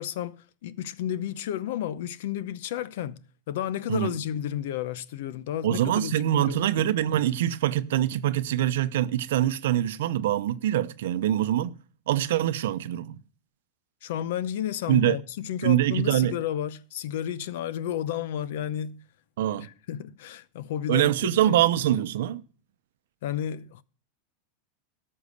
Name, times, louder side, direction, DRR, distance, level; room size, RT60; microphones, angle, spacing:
voice 1, 0.0-6.9 14.0-19.0 19.6-21.6 23.2-23.8, left 10 dB, 70° left, 0.7 m, -32 dB
voice 2, 5.6-11.8 12.1-13.2 14.9-15.2 15.6-16.4 19.4-19.7 20.9-22.4, right 12 dB, 80° right, 0.7 m, -24 dB
13.5 x 5.5 x 6.5 m
supercardioid pair, 145°, 0 cm